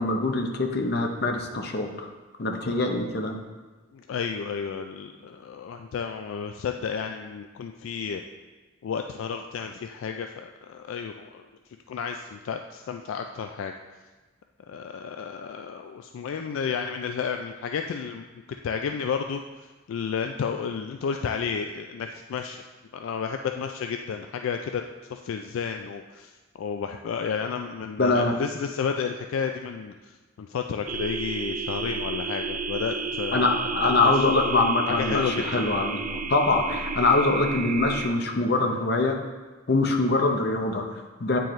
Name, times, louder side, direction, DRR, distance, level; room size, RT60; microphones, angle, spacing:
voice 1, 0.0-1.9 2.4-3.4 28.0-28.4 33.3-36.0 36.3-39.2 39.7-41.4, left 2 dB, 50° left, 3 dB, 0.7 m, -23 dB
voice 2, 3.9-8.2 8.8-11.4 11.9-13.7 14.7-18.2 18.6-19.4 19.9-22.6 22.9-24.8 25.1-26.3 26.6-30.1 30.4-33.5 34.0-34.2 35.0-35.4 36.1-36.2, left 6 dB, 75° left, 5 dB, 0.3 m, -31 dB
sound 1, 30.9-38.1, right 4 dB, 40° right, 0.3 m, -32 dB
8.9 x 4.5 x 3.1 m, 1.3 s
head